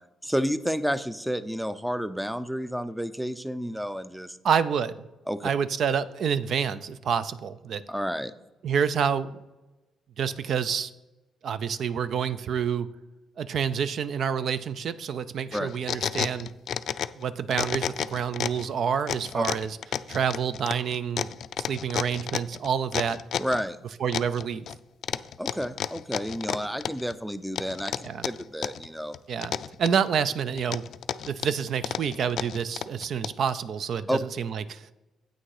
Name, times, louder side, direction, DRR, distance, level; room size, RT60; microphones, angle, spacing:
voice 1, 0.2-4.4 5.3-5.5 7.9-8.3 15.5-15.7 19.3-19.4 23.4-23.8 25.4-29.2 34.1-34.2, equal, ahead, 14 dB, 0.5 m, -30 dB
voice 2, 4.4-5.1 5.4-7.8 8.6-9.4 10.2-10.9 11.4-12.9 13.4-16.5 17.2-19.8 20.1-21.3 21.7-23.2 24.0-24.7 28.0-28.3 29.3-29.5 29.8-30.8 31.3-34.9, right 7 dB, 65° right, 14 dB, 0.4 m, -28 dB
sound 1, 15.5-17.2 17.5-18.7 19.1-23.6 24.1-24.8 25.0-27.1 27.6-28.9 29.1-30.1 30.6-33.5, left 9 dB, 65° left, 0.3 m, -31 dB
8.4 x 6.2 x 4.8 m, 1.1 s
cardioid pair, 90°, 0 cm